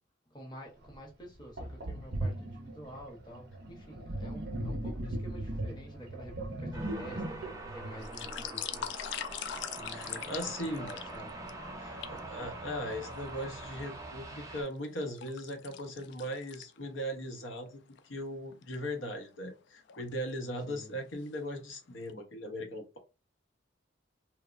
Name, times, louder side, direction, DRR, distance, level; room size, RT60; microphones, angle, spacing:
voice 1, 0.3-8.9 9.7-10.3 10.8-11.4 20.7-20.9, equal, 25° left, 0.7 m, -49 dB
Sink (filling or washing), 0.9-1.0 1.6-8.9, right 1 dB, 55° right, 0.6 m, -38 dB
sound 1, 6.7-14.6, right 2 dB, 15° right, 0.4 m, -44 dB
sound 2, 7.9-11.5 12.0-12.2 12.9-13.7 14.2-17.1 17.4-17.5 18.0-18.1 18.5-18.7 19.6-20.1 20.6-20.8 21.1-21.8 22.1-22.2, left 10 dB, 60° left, 0.3 m, -42 dB
voice 2, 9.9-10.9 11.8-23.0, equal, 85° left, 0.7 m, -39 dB
3.0 x 2.0 x 2.4 m
head